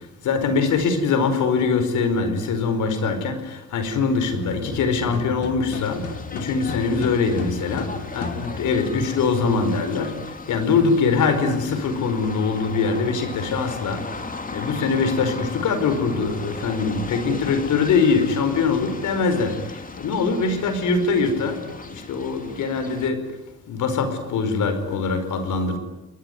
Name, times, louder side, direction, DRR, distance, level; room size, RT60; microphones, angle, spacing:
voice 1, 0.3-3.4 3.7-6.0 6.3-7.9 8.1-10.1 10.5-14.0 14.5-19.6 20.0-21.6 21.9-23.2 23.7-25.8, left 4 dB, 80° left, 5.1 m, -22 dB
sound 1, 4.3-8.9, left 5 dB, 55° left, 2.8 m, -35 dB
sound 2, 5.7-23.1, left 3 dB, 30° left, 3.2 m, -37 dB
29.5 x 21.0 x 9.4 m
cardioid pair, 90°, 30 cm